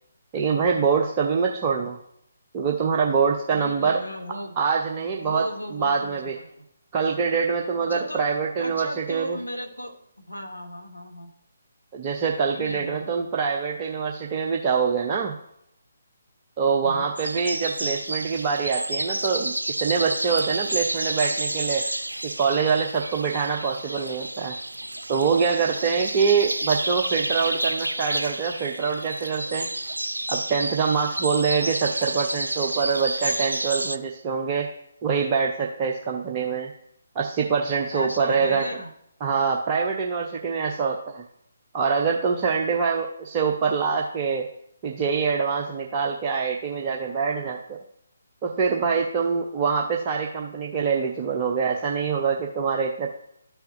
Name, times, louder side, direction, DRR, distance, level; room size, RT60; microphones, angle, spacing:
voice 1, 0.3-2.0 2.5-4.0 4.6-5.4 5.7-6.3 6.9-9.4 11.9-15.3 16.6-21.8 22.2-24.5 25.1-29.7 30.3-34.7 35.0-36.7 37.1-38.6 39.2-41.2 41.7-44.4 44.8-47.8 48.4-53.1, right 5 dB, 25° right, 0 dB, 0.6 m, -24 dB
voice 2, 3.5-4.6 5.2-6.5 7.8-11.3 12.5-13.1 16.8-17.1 37.9-38.9, equal, 90° left, 4 dB, 1.3 m, -36 dB
sound 1, 17.2-34.0, right 1 dB, 80° right, 0.4 m, -30 dB
12.5 x 5.7 x 2.7 m, 0.74 s
figure-of-eight pair, 140°, 0 cm